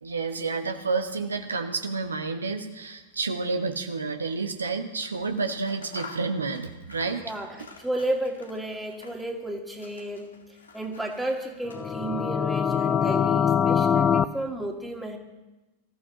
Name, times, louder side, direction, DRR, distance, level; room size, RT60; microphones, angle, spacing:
voice 1, 0.0-7.2, right 4 dB, 75° right, 6 dB, 1.1 m, -30 dB
Scissors, 4.9-9.4 9.7-12.2, left 4 dB, 70° left, 1.7 m, -48 dB
voice 2, 7.1-10.3 10.7-15.2, right 1 dB, 5° right, 1 dB, 2.2 m, -32 dB
sound 1, 11.7-14.2, left 8 dB, 20° left, 0.5 m, -23 dB
25.5 x 14.5 x 2.9 m, 1.1 s
figure-of-eight pair, 90°, 0 cm